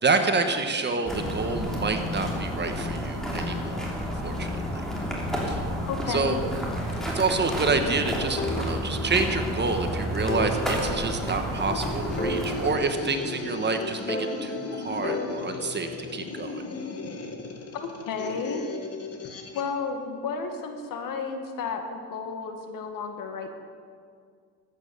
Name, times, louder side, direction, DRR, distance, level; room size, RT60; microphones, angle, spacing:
voice 1, 0.0-4.9 5.5-5.6 6.1-6.4 7.0-16.6, right 4 dB, 30° right, 6 dB, 1.3 m, -28 dB
sound 1, 1.0-12.8, equal, ahead, 3.2 m, -31 dB
voice 2, 5.9-6.4 17.7-18.6 19.5-23.5, left 5 dB, 60° left, 5 dB, 1.8 m, -32 dB
sound 2, 8.4-9.5 9.8-9.9 10.3-11.8 12.2-13.6 14.1-15.9, left 2 dB, 25° left, 1.7 m, -34 dB
sound 3, 11.5-19.7, left 4 dB, 40° left, 1.8 m, -37 dB
14.0 x 9.1 x 6.8 m, 2.1 s
cardioid pair, 100°, 36 cm